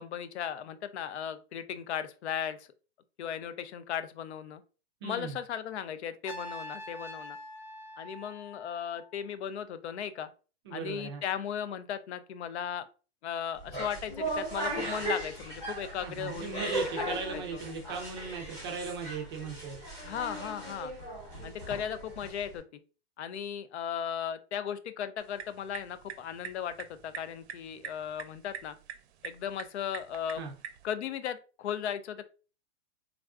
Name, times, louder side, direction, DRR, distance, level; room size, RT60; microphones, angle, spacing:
voice 1, 0.0-2.7 3.2-4.6 5.0-7.4 8.0-10.3 10.7-12.8 13.2-17.4 20.0-20.9 21.4-22.6 23.2-28.8 29.2-30.5 30.8-32.3, left 8 dB, 90° left, 12 dB, 0.5 m, -36 dB
voice 2, 5.0-5.4 10.6-11.2 16.0-19.8 30.4-30.5, right 5 dB, 25° right, 2 dB, 0.4 m, -37 dB
Trumpet, 6.2-9.2, left 1 dB, 45° left, 0.8 m, -44 dB
sound 1, 13.6-22.6, right 1 dB, 10° left, 0.7 m, -37 dB
sound 2, 25.2-30.9, right 8 dB, 80° right, 0.6 m, -46 dB
3.5 x 2.3 x 2.3 m, 0.35 s
hypercardioid pair, 160°, 33 cm